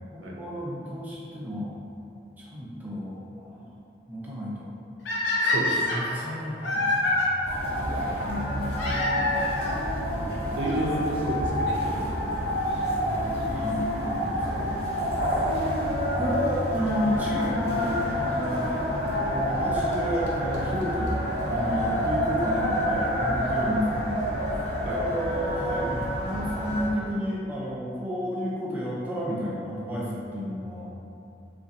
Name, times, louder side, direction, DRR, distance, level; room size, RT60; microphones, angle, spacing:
voice 1, 0.1-1.7 2.4-3.7 4.1-4.7 5.9-7.4 8.1-8.8 13.1-14.7 16.2-18.8 19.1-21.2 21.5-24.3 24.8-30.9, equal, 10° right, -7 dB, 0.5 m, -32 dB
sound 1, 5.0-7.3 8.7-9.8 10.7-10.8 11.5-11.6 11.8-11.9 13.8-14.0 16.9-17.0 18.0-18.1 19.5-19.6 19.9-20.0 20.3-20.4 20.5-20.6 20.8-20.9 21.1-21.2 21.4-21.5, left 2 dB, 85° left, 0.6 m, -27 dB
voice 2, 5.4-5.9 7.8-8.2 10.5-12.3 14.4-14.6 15.1-15.5 24.8-25.0, right 1 dB, 85° right, -2 dB, 0.5 m, -32 dB
sound 2, 7.4-26.9, equal, 60° left, 1.1 m, -28 dB
3.9 x 2.4 x 2.6 m, 2.7 s
head